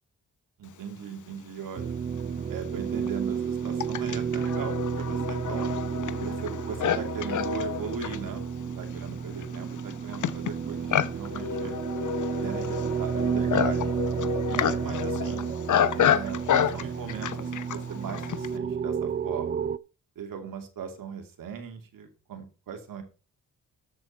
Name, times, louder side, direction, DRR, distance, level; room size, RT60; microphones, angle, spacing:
voice 1, 0.6-1.9 2.5-5.8 6.2-11.7 12.3-13.9 14.5-15.5 15.9-19.6 20.2-23.0, right 7 dB, 75° right, 5 dB, 2.7 m, -38 dB
Livestock farm animals working animals, 1.8-1.9 2.6-18.6, left 9 dB, 60° left, 0.9 m, -30 dB
sound 1, 1.8-19.8, right 7 dB, 30° right, 0.5 m, -31 dB
13.5 x 7.7 x 4.4 m, 0.34 s
cardioid pair, 75°, 33 cm